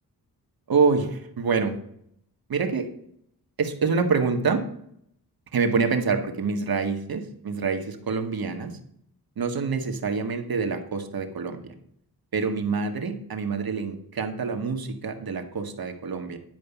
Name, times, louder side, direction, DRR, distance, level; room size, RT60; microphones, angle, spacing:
voice 1, 0.7-1.8 2.5-2.9 3.6-4.6 5.5-8.8 9.4-11.7 12.3-16.4, right 5 dB, 65° right, 5 dB, 1.8 m, -26 dB
11.0 x 5.4 x 7.2 m, 0.69 s
cardioid pair, 85°, 39 cm